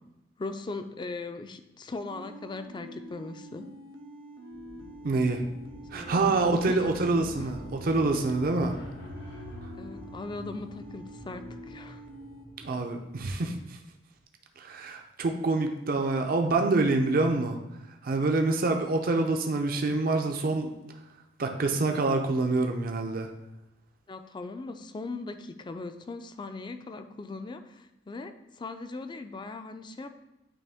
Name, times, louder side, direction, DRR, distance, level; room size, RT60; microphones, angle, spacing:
voice 1, 0.4-3.7 5.9-7.5 9.7-12.0 24.1-30.1, left 3 dB, 25° left, 8 dB, 0.4 m, -39 dB
sound 1, 2.1-12.5, right 1 dB, 90° right, 0.7 m, -46 dB
sound 2, 4.5-13.3, left 1 dB, 75° left, 1.0 m, -46 dB
voice 2, 5.0-5.4 5.9-8.8 12.6-13.5 14.6-17.6 18.0-20.7 21.4-23.3, right 3 dB, 50° right, 4 dB, 0.5 m, -26 dB
9.1 x 3.1 x 3.5 m, 0.95 s
head